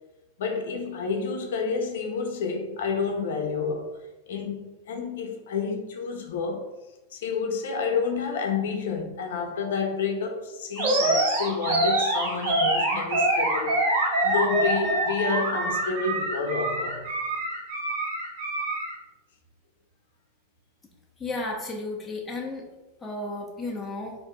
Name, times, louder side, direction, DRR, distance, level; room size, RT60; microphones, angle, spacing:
voice 1, 0.4-4.0 4.3-6.7 7.1-17.0, left 5 dB, 80° left, 0.6 m, -29 dB
Animal, 10.8-18.9, right 2 dB, 55° right, 1.2 m, -25 dB
voice 2, 21.2-22.6 23.0-24.2, left 2 dB, 10° left, 0.7 m, -33 dB
4.5 x 2.6 x 2.3 m
supercardioid pair, 130°, 0 cm